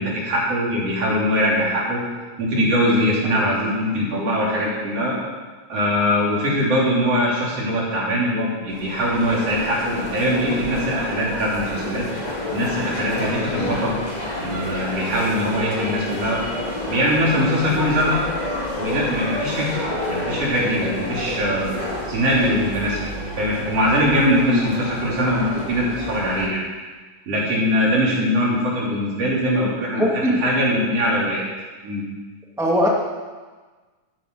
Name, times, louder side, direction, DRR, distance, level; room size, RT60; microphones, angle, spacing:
voice 1, 0.0-2.0 2.4-5.2 5.7-12.1 12.5-14.0 14.4-16.4 16.9-18.2 18.7-19.7 20.1-21.7 22.1-23.0 23.4-26.6 27.3-31.4 31.8-32.0, equal, 50° right, -5 dB, 4.2 m, -22 dB
sound 1, 8.7-26.5, left 1 dB, 15° left, 1.5 m, -29 dB
voice 2, 30.0-30.4 32.6-32.9, equal, 5° right, -2 dB, 0.5 m, -19 dB
13.5 x 9.8 x 6.1 m, 1.3 s
omnidirectional pair, 3.7 m